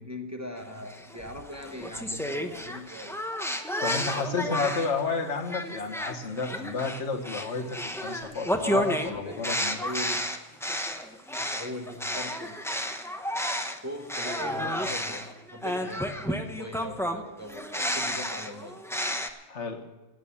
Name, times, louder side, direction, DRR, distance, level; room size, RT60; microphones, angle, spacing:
voice 1, 0.0-3.4 4.1-4.8 8.7-10.3 11.4-12.7 13.8-18.9, left 1 dB, 15° right, 3 dB, 1.1 m, -40 dB
sound 1, 0.9-5.0 5.5-13.8 14.1-19.3, equal, 5° left, 0.8 m, -31 dB
voice 2, 3.8-9.8 19.5-19.8, left 4 dB, 85° left, 4 dB, 1.6 m, -31 dB
16.5 x 8.1 x 7.0 m, 1.2 s
omnidirectional pair, 1.2 m